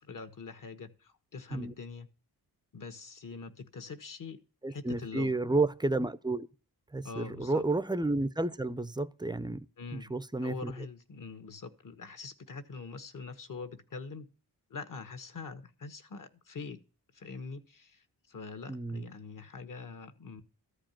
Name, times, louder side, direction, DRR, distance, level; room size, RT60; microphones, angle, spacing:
voice 1, 0.0-2.1 2.7-4.4 4.7-5.4 7.0-7.6 9.8-10.1 10.4-14.3 14.7-16.8 17.1-20.4, left 4 dB, 50° left, 1.6 m, -44 dB
voice 2, 4.6-6.5 6.9-9.7 10.1-10.7 18.7-19.0, right 2 dB, 10° right, 0.6 m, -31 dB
14.5 x 5.1 x 9.0 m
wide cardioid pair, 135°, 40 cm